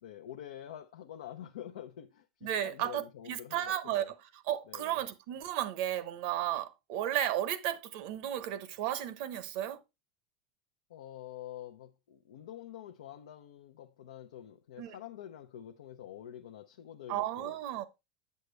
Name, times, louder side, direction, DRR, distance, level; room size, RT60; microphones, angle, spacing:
voice 1, 0.0-4.1 4.7-5.0 10.9-17.6, left 11 dB, 90° left, 0.6 m, -47 dB
voice 2, 2.4-4.0 4.4-9.8 14.8-14.9 17.1-17.9, right 11 dB, 70° right, 0.8 m, -34 dB
8.1 x 6.5 x 3.2 m
supercardioid pair, 105°, 3 cm